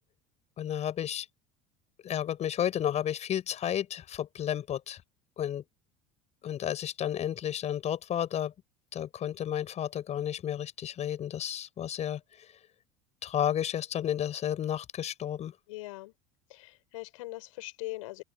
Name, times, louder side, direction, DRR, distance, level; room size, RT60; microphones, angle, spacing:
voice 1, 0.6-1.3 2.0-5.0 5.4-5.6 6.4-8.5 8.9-12.2 13.2-15.5, left 10 dB, 35° left, 6.0 m, -32 dB
voice 2, 15.7-16.1 16.5-18.2, left 20 dB, 60° left, 4.6 m, -41 dB
figure-of-eight pair, 70°, 19 cm